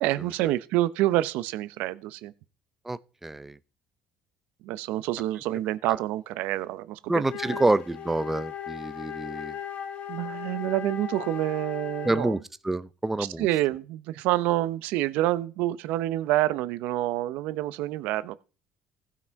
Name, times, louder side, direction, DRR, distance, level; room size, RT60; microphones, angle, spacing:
voice 1, 0.0-2.3 4.6-7.2 10.1-12.3 13.2-18.4, right 15 dB, 80° right, 0.8 m, -27 dB
voice 2, 2.9-3.6 5.9-6.0 7.1-9.6 12.0-13.5, right 2 dB, 10° right, 0.5 m, -27 dB
Wind instrument woodwind instrument, 7.2-12.5, left 9 dB, 55° left, 1.4 m, -37 dB
15.5 x 6.0 x 4.6 m
cardioid pair, 115°, 3 cm